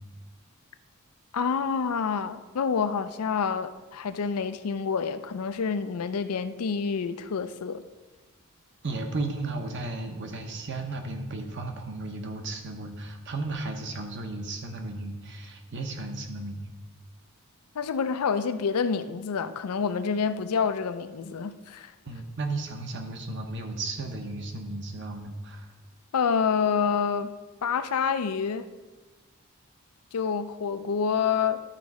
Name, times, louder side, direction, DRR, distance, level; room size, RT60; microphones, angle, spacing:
voice 1, 1.3-7.8 17.7-21.9 26.1-27.3 27.6-28.7 30.1-31.6, left 6 dB, 85° left, 0.5 m, -27 dB
voice 2, 8.8-16.7 22.0-25.7, right 2 dB, 55° right, 0.9 m, -34 dB
11.5 x 4.1 x 4.8 m
head